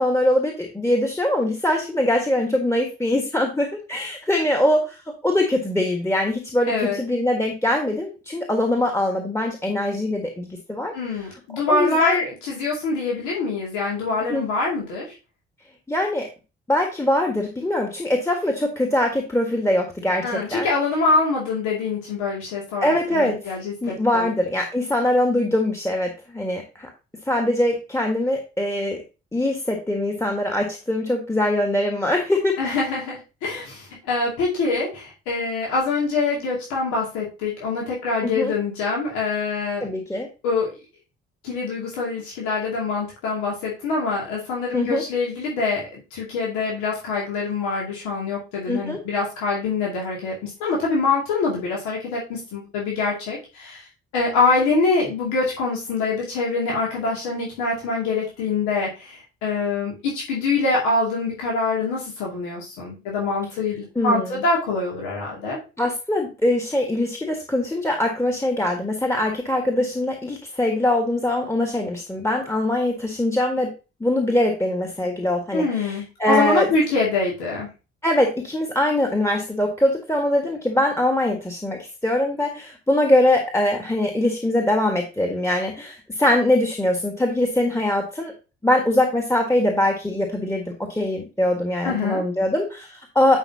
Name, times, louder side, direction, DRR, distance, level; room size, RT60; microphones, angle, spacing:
voice 1, 0.0-10.9 11.7-12.2 14.3-14.4 15.9-16.3 16.7-20.7 22.8-23.5 23.8-26.9 27.3-29.0 29.3-32.8 38.2-38.5 39.8-40.3 44.7-45.0 48.7-49.0 64.0-64.4 65.8-73.7 74.0-76.7 78.0-88.3 88.6-93.4, left 1 dB, 10° left, 2 dB, 1.7 m, -22 dB
voice 2, 6.7-7.0 10.9-15.2 20.2-24.3 32.6-39.9 40.4-40.7 41.4-53.9 54.1-65.6 75.5-77.7 91.8-92.2, left 3 dB, 70° left, -3 dB, 2.5 m, -24 dB
9.7 x 5.1 x 2.8 m, 0.31 s
figure-of-eight pair, 40°, 31 cm